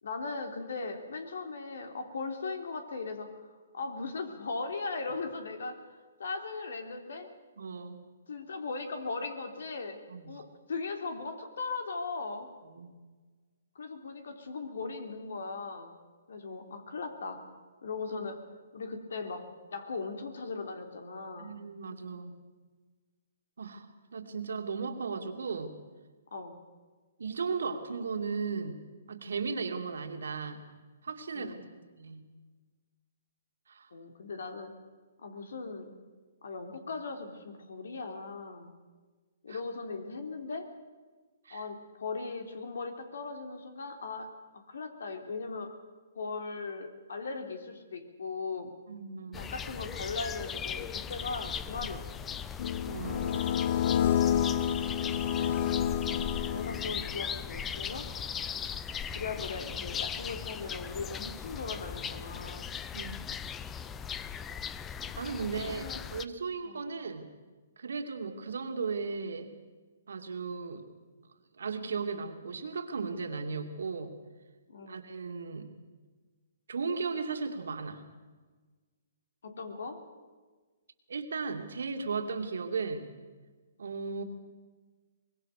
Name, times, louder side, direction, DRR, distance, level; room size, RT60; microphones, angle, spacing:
voice 1, 0.0-7.3 8.3-10.0 10.3-12.5 13.7-16.0 16.3-17.5 17.8-18.4 18.7-21.6 26.3-26.6 31.3-31.6 33.9-34.7 35.2-35.9 36.4-38.8 39.4-40.7 41.5-45.7 46.1-48.8 49.3-52.5 56.4-58.1 59.1-62.8 65.0-66.4 66.6-66.8 74.7-75.0 79.4-80.0, left 4 dB, 75° left, 7 dB, 3.3 m, -39 dB
voice 2, 7.6-8.0 10.1-10.4 12.6-12.9 21.4-22.4 23.6-23.9 24.1-25.7 27.2-28.8 29.1-30.6 31.0-31.5 32.0-32.2 33.7-33.9 39.5-39.6 41.4-41.6 48.9-49.5 52.9-53.6 55.0-55.5 62.9-63.2 65.2-65.8 66.1-67.3 67.8-69.5 70.1-70.8 71.6-74.1 74.9-75.7 76.7-78.0 81.1-83.1 83.8-84.2, right 5 dB, 80° right, 6 dB, 2.7 m, -36 dB
sound 1, 49.3-66.3, left 7 dB, 15° left, 0.7 m, -38 dB
sound 2, 52.6-57.2, left 9 dB, 50° left, 1.0 m, -29 dB
24.0 x 20.5 x 6.8 m, 1.4 s
hypercardioid pair, 145°, 0 cm